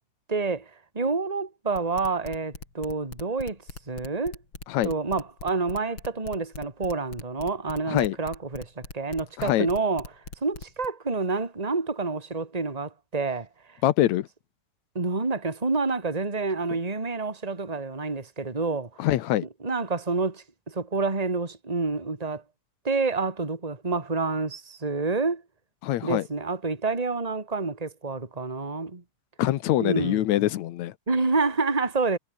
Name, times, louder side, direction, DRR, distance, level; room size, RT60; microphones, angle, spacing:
voice 1, 0.3-0.7 0.9-3.6 3.9-4.4 4.8-10.1 10.4-13.8 14.9-18.9 19.6-22.4 22.8-25.4 26.0-29.0 29.8-30.2 31.1-32.2, right 3 dB, 15° right, 2.7 m, -28 dB
sound 1, 1.7-10.9, left 4 dB, 40° left, 4.8 m, -40 dB
voice 2, 13.8-14.3 19.0-19.5 25.8-26.2 29.4-30.9, left 14 dB, 70° left, 2.1 m, -24 dB
omnidirectional pair, 3.5 m